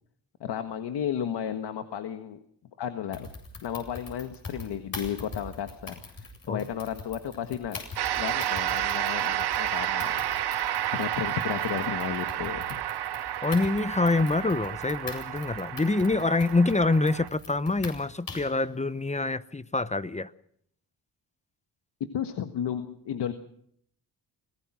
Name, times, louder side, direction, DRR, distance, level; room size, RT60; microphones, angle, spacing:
voice 1, 0.4-2.4 2.8-3.3 3.6-7.8 8.1-10.2 10.9-12.8 22.1-23.3, left 9 dB, 75° left, 1.6 m, -33 dB
sound 1, 3.1-18.6, left 3 dB, 55° left, 7.9 m, -43 dB
sound 2, 8.0-17.3, right 12 dB, 65° right, 0.9 m, -31 dB
voice 2, 13.4-20.3, left 3 dB, 15° left, 0.9 m, -26 dB
25.5 x 18.0 x 6.2 m
cardioid pair, 65°, 42 cm